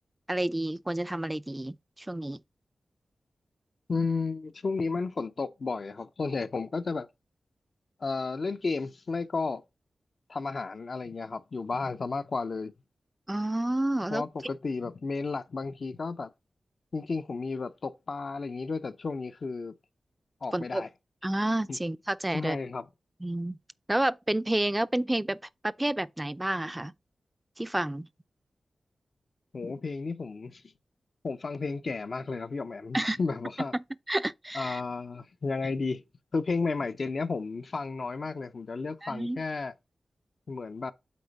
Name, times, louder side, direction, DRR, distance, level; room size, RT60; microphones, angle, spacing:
voice 1, 0.3-2.4 13.3-14.3 20.5-20.8 21.2-22.6 23.2-23.6 23.9-25.4 25.6-26.9 27.6-28.1 32.9-33.2 34.1-34.8 39.0-39.4, right 1 dB, 15° right, 0.4 m, -30 dB
voice 2, 3.9-7.1 8.0-9.6 10.3-12.7 14.1-16.3 16.9-19.7 20.4-20.9 21.7-21.8 22.3-22.9 29.5-30.6 31.2-33.8 34.5-36.0 36.3-39.7 40.5-40.9, left 4 dB, 60° left, 0.6 m, -33 dB
8.4 x 3.9 x 4.1 m
cardioid pair, 55°, 0 cm